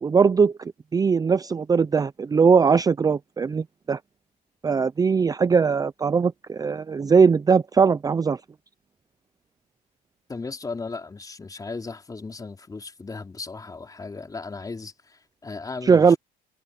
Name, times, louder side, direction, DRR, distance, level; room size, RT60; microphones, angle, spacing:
voice 1, 0.0-4.0 4.6-8.4 15.8-16.2, right 5 dB, 20° right, 0.5 m, -20 dB
voice 2, 10.3-16.2, left 4 dB, 20° left, 4.1 m, -36 dB
cardioid pair, 110°, 17 cm